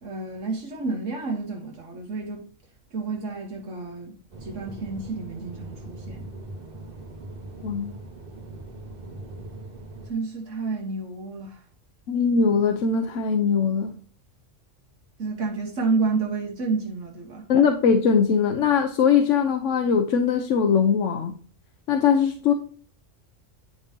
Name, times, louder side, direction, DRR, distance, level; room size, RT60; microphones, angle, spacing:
voice 1, 0.0-2.5 2.9-6.3 10.1-11.6 15.2-17.5, right 4 dB, 75° right, 1.7 m, -30 dB
sound 1, 4.3-10.1, right 2 dB, 45° right, 2.1 m, -40 dB
voice 2, 12.1-13.9 17.5-21.3 21.9-22.5, left 6 dB, 80° left, 1.1 m, -21 dB
10.5 x 5.3 x 2.8 m
omnidirectional pair, 1.3 m